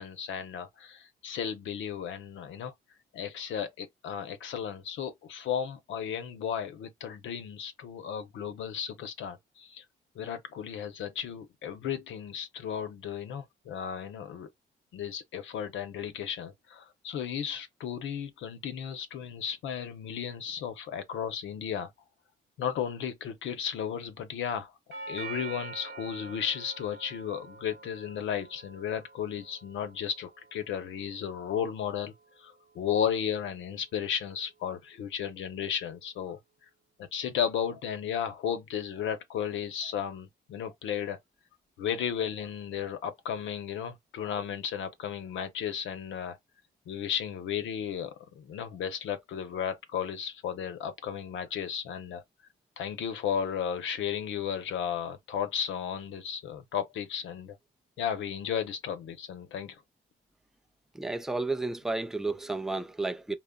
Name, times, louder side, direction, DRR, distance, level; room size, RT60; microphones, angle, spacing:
voice 1, 0.0-2.7 3.1-9.8 10.2-14.5 14.9-21.9 22.6-24.7 25.1-32.1 32.4-36.4 37.1-41.2 41.8-46.4 46.9-52.2 52.8-57.6 58.0-59.8, left 8 dB, 75° left, 0.7 m, -34 dB
Doorbell, 24.9-33.0, right 4 dB, 55° right, 1.0 m, -46 dB
voice 2, 60.9-63.4, right 3 dB, ahead, 0.4 m, -32 dB
3.7 x 2.0 x 2.2 m
cardioid pair, 90°, 20 cm